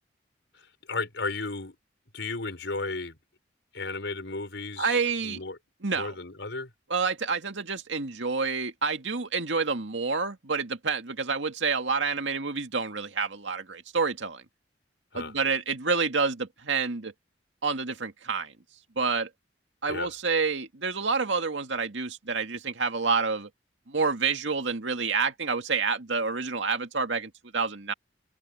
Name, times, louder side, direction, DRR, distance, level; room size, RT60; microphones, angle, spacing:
voice 1, 0.5-1.7 2.1-3.2 3.7-5.6 5.9-6.7 15.1-15.4 19.9-20.1, left 3 dB, 80° left, 4.9 m, -34 dB
voice 2, 4.8-5.4 5.8-6.1 6.9-14.4 15.1-17.1 17.6-18.5 19.0-19.3 19.8-23.5 23.9-27.9, right 4 dB, 90° right, 2.1 m, -28 dB
open air
head